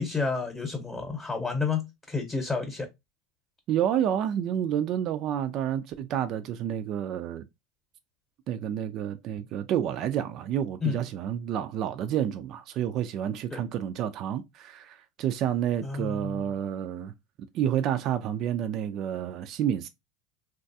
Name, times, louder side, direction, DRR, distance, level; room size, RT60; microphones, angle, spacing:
voice 1, 0.0-2.9 10.8-11.0 13.5-13.6 15.8-16.5, left 4 dB, 15° left, 0.8 m, -30 dB
voice 2, 3.7-7.4 8.5-17.1 17.5-19.9, right 10 dB, 50° right, 0.3 m, -29 dB
3.0 x 2.3 x 2.6 m
supercardioid pair, 105°, 0 cm